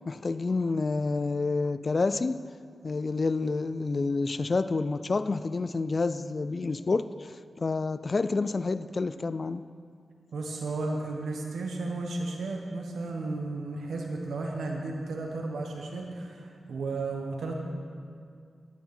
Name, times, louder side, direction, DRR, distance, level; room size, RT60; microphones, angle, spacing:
voice 1, 0.1-2.4 2.8-9.7, left 3 dB, 45° left, 13 dB, 0.3 m, -29 dB
voice 2, 10.3-17.5, right 3 dB, 85° right, 1 dB, 1.4 m, -34 dB
11.5 x 9.5 x 4.4 m, 2.2 s
cardioid pair, 70°, 0 cm